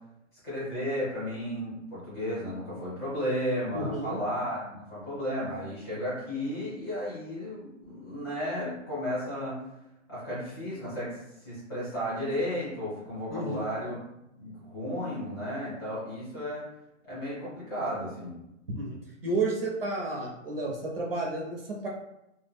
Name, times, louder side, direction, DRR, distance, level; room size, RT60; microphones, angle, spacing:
voice 1, 0.4-9.6 10.1-14.0 14.3-16.6 17.1-18.3, equal, 20° left, -9 dB, 0.8 m, -33 dB
voice 2, 3.7-4.2 13.3-13.9 18.7-19.0 19.2-21.9, right 2 dB, 50° right, -2 dB, 0.5 m, -31 dB
2.1 x 2.1 x 3.2 m, 0.86 s
hypercardioid pair, 180°, 38 cm